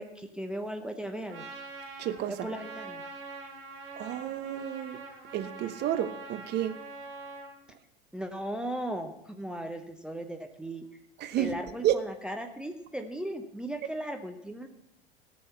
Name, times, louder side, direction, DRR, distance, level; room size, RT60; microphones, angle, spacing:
voice 1, 0.0-1.4 2.3-3.0 8.1-10.8 11.4-14.7, right 1 dB, 5° right, 5 dB, 0.9 m, -37 dB
Trumpet, 1.3-7.5, right 3 dB, 65° right, 3.1 m, -44 dB
voice 2, 2.0-2.4 4.0-5.0 5.3-6.7 11.2-11.5 11.8-11.9, right 11 dB, 30° right, 11 dB, 0.9 m, -30 dB
17.5 x 6.4 x 5.7 m, 0.81 s
figure-of-eight pair, 85°, 32 cm